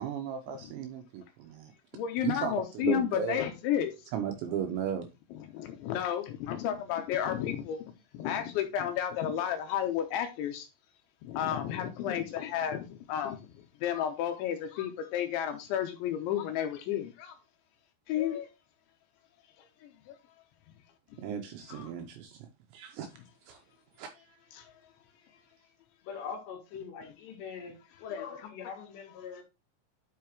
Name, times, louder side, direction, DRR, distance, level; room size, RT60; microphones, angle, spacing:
voice 1, 0.0-1.7 2.2-3.4 4.1-5.1 21.2-22.5 22.7-23.1 23.5-23.6 24.0-24.1, right 8 dB, 80° right, 2.7 m, -35 dB
voice 2, 1.9-3.9 5.5-7.8 8.1-10.7 11.2-13.4 13.8-17.4 18.1-18.5 19.8-20.1 21.7-21.9 24.5-24.7 28.0-28.3, left 10 dB, 80° left, 2.9 m, -32 dB
voice 3, 26.0-27.8 28.1-29.4, left 6 dB, 65° left, 3.6 m, -42 dB
10.5 x 5.8 x 3.0 m
omnidirectional pair, 5.9 m